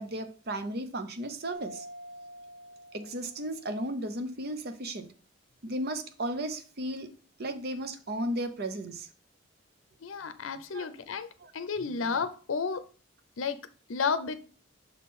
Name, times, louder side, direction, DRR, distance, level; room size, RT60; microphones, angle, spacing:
voice 1, 0.0-1.9 2.9-5.1 5.6-7.1 7.4-9.1 10.7-10.9 11.4-11.5, right 1 dB, 50° right, 8 dB, 0.7 m, -35 dB
Mallet percussion, 1.5-4.0, right 1 dB, 15° right, 1.5 m, -47 dB
voice 2, 10.0-11.3 11.5-12.8 13.4-13.6 13.9-14.4, left 5 dB, 85° left, 12 dB, 0.6 m, -31 dB
6.7 x 3.7 x 4.2 m, 0.38 s
head